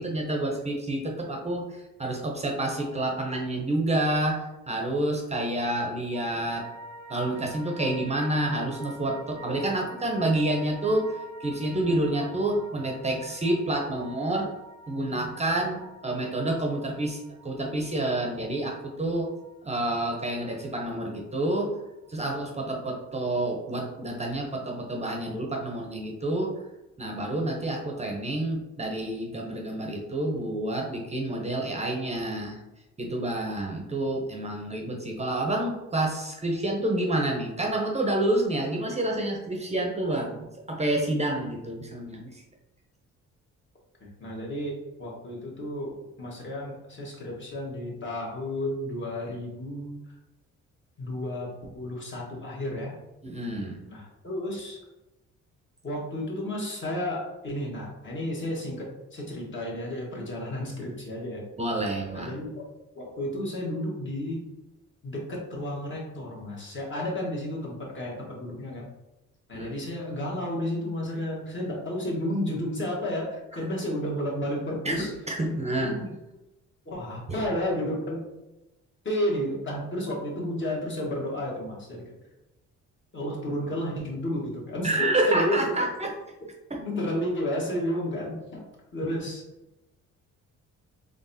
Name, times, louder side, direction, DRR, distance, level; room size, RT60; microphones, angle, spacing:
voice 1, 0.0-6.7 7.1-14.5 14.9-17.2 17.4-19.3 19.6-21.7 22.1-26.5 27.0-32.6 33.0-42.4 53.2-53.8 61.6-62.3 69.5-69.7 73.5-73.6 74.8-76.0 77.3-77.4 84.8-86.1 86.7-86.8 89.0-89.1, right 1 dB, 20° right, 1 dB, 0.7 m, -28 dB
sound 1, 6.1-22.5 22.8-22.9, right 1 dB, 70° right, 0.7 m, -46 dB
voice 2, 44.0-50.0 51.0-52.9 53.9-54.8 55.8-61.4 62.1-62.6 62.9-64.4 65.0-68.8 69.5-75.1 75.5-75.6 75.8-76.1 76.8-78.2 79.0-82.1 83.1-85.6 86.8-88.6 88.9-89.4, left 1 dB, 40° left, -3 dB, 1.5 m, -32 dB
3.9 x 3.4 x 2.7 m, 0.98 s
cardioid pair, 90°, 30 cm